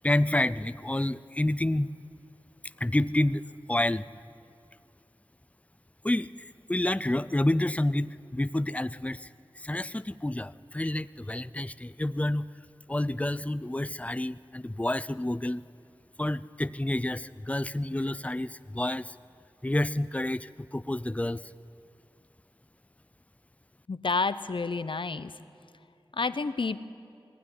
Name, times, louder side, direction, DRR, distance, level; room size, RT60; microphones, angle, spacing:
voice 1, 0.0-1.9 2.8-3.4 3.7-4.1 6.0-9.3 9.6-12.5 12.9-15.6 16.2-19.2 19.6-21.4, left 1 dB, 15° left, 16 dB, 0.5 m, -29 dB
voice 2, 23.9-25.4 26.1-26.8, left 4 dB, 65° left, 13 dB, 0.8 m, -30 dB
21.0 x 16.0 x 9.9 m, 2.5 s
wide cardioid pair, 55°, 9 cm